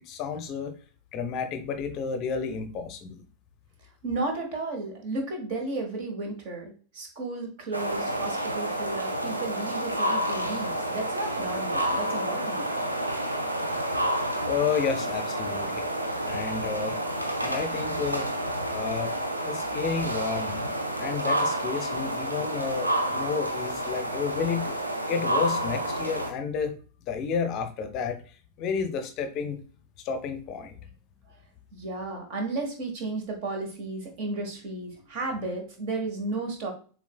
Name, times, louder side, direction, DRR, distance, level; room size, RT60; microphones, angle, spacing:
voice 1, 0.1-0.7 1.1-3.2 14.4-15.9 16.3-17.0 17.4-18.3 18.7-19.2 19.4-20.7 21.0-24.7 25.1-26.8 27.1-29.6 30.0-30.9, left 6 dB, 35° left, 8 dB, 0.6 m, -31 dB
voice 2, 4.0-12.7 31.3-31.4 31.7-36.7, right 3 dB, 45° right, 3 dB, 1.3 m, -33 dB
sound 1, 7.7-26.3, right 1 dB, 85° right, 0.6 m, -29 dB
7.0 x 2.4 x 2.3 m, 0.39 s
figure-of-eight pair, 90°, 0 cm